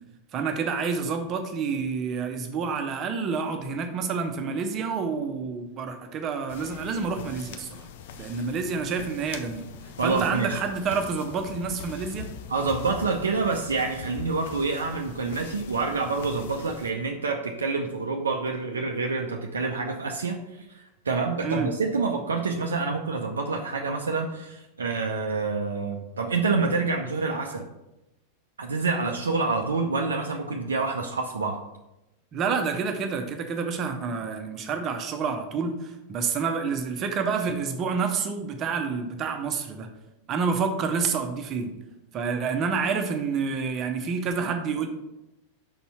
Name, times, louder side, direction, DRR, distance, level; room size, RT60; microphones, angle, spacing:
voice 1, 0.3-7.9 8.2-9.6 10.0-12.3 21.4-21.7 32.3-39.9 40.3-41.7 42.1-44.9, right 5 dB, 30° right, 5 dB, 0.9 m, -28 dB
sound 1, 6.5-16.9, left 6 dB, 55° left, 0.6 m, -42 dB
voice 2, 10.0-10.6 12.5-27.7 28.6-31.6, right 4 dB, 70° right, 2 dB, 0.6 m, -27 dB
5.8 x 4.2 x 5.6 m, 0.94 s
figure-of-eight pair, 90°, 0 cm